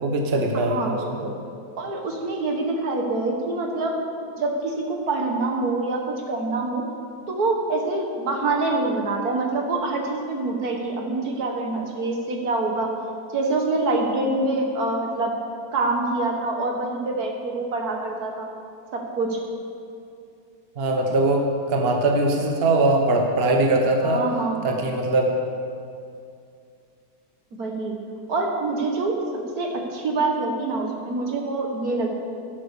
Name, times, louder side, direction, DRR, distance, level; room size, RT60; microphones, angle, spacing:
voice 1, 0.0-1.3 20.8-24.2 24.6-25.3, right 2 dB, 40° right, 2 dB, 1.2 m, -21 dB
voice 2, 0.5-1.3 1.8-4.0 4.4-6.8 7.3-12.9 13.3-15.3 15.7-18.5 18.9-19.4 24.0-24.6 27.5-28.0 28.3-32.1, right 2 dB, 65° right, 2 dB, 1.8 m, -25 dB
12.5 x 7.7 x 6.8 m, 2.5 s
omnidirectional pair, 1.8 m